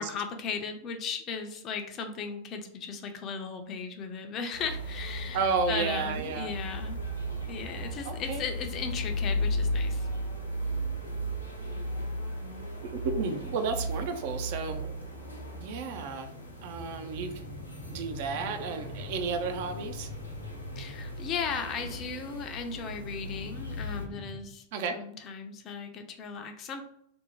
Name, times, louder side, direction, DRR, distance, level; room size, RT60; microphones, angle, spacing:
voice 1, 0.0-5.4 5.7-7.0 7.5-10.1 20.8-24.6 24.9-26.8, left 5 dB, 35° left, 5 dB, 0.4 m, -36 dB
sound 1, 4.5-24.0, equal, 85° left, 0.6 m, -36 dB
voice 2, 5.3-6.5 8.0-8.4 12.8-14.8 15.6-17.3 17.9-20.1 24.7-25.0, right 4 dB, 50° right, 7 dB, 0.4 m, -32 dB
sound 2, 13.1-13.8 14.7-15.6 16.4-21.3 22.7-24.4, left 2 dB, 70° right, 1.0 m, -45 dB
2.5 x 2.0 x 3.0 m, 0.71 s
figure-of-eight pair, 90°, 0 cm